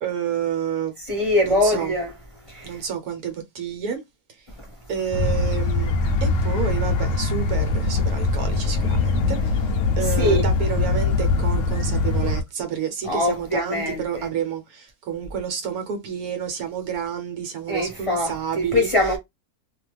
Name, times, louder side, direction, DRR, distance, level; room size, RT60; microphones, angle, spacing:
voice 1, 0.0-0.9 1.4-1.9 2.6-4.0 4.9-5.9 6.2-9.6 10.0-18.9, right 7 dB, 70° right, 1.3 m, -29 dB
voice 2, 1.1-2.1 2.5-2.8 10.2-10.4 13.0-14.3 17.7-19.2, left 1 dB, 25° left, 0.9 m, -23 dB
sound 1, 5.1-12.4, left 3 dB, 65° left, 0.8 m, -22 dB
2.7 x 2.3 x 3.2 m
omnidirectional pair, 1.6 m